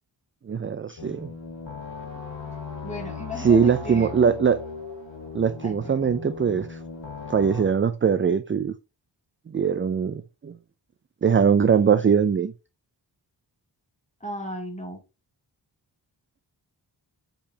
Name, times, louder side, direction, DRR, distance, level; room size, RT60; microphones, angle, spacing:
voice 1, 0.5-1.3 3.4-4.7 5.3-6.8 7.3-8.7 9.5-10.6 11.2-12.5, right 6 dB, 30° right, 0.4 m, -21 dB
sound 1, 1.0-7.6, left 4 dB, 75° left, 2.1 m, -38 dB
voice 2, 2.8-4.2 5.6-6.1 14.2-15.0, equal, 15° left, 2.6 m, -36 dB
6.7 x 5.3 x 2.8 m
wide cardioid pair, 90°, 45 cm